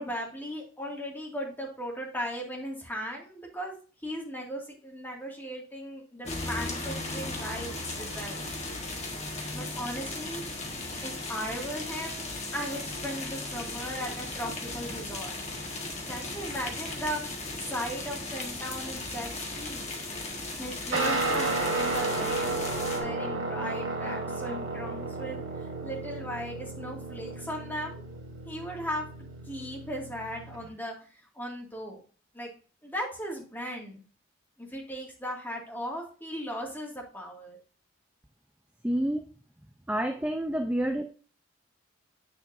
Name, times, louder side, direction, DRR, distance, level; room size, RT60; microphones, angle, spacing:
voice 1, 0.0-3.7 4.0-8.5 9.5-10.4 11.0-15.3 16.1-19.9 20.6-25.4 25.8-29.1 29.5-30.9 31.4-32.0 32.3-32.5 32.8-34.0 34.6-37.6, equal, 10° left, -1 dB, 2.0 m, -37 dB
sound 1, 6.2-23.0, left 2 dB, 35° left, 1.5 m, -36 dB
Guitar, 20.9-30.7, right 2 dB, 90° right, 1.7 m, -33 dB
voice 2, 38.8-39.2 39.9-41.0, right 1 dB, 5° right, 5 dB, 0.4 m, -28 dB
7.6 x 7.0 x 2.6 m, 0.38 s
head